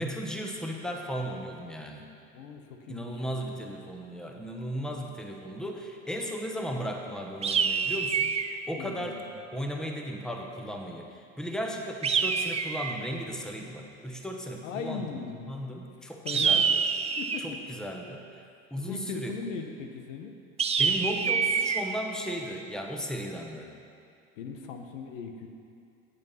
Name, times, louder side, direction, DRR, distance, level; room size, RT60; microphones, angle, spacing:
voice 1, 0.0-2.0 2.9-8.3 8.7-9.2 9.5-11.1 11.4-15.1 15.5-16.8 17.4-18.2 18.7-19.3 20.8-23.7, equal, ahead, 1 dB, 1.2 m, -35 dB
voice 2, 2.3-3.5 8.7-9.3 14.6-15.6 16.0-16.8 17.2-17.6 18.8-20.3 24.4-25.5, left 5 dB, 75° left, 5 dB, 1.0 m, -39 dB
sound 1, 7.4-8.6 12.0-13.1 16.3-17.5 20.6-21.8, right 6 dB, 15° right, 0.4 m, -26 dB
8.7 x 8.2 x 5.6 m, 2.4 s
hypercardioid pair, 80°, 38 cm